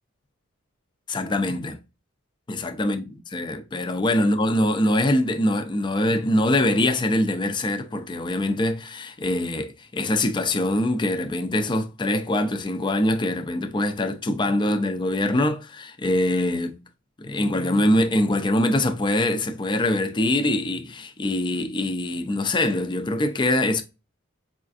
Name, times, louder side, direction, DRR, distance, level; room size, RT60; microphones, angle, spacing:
voice 1, 1.1-1.8 2.5-16.8 17.2-23.8, left 1 dB, 20° left, 0.5 m, -23 dB
5.0 x 2.4 x 2.4 m
head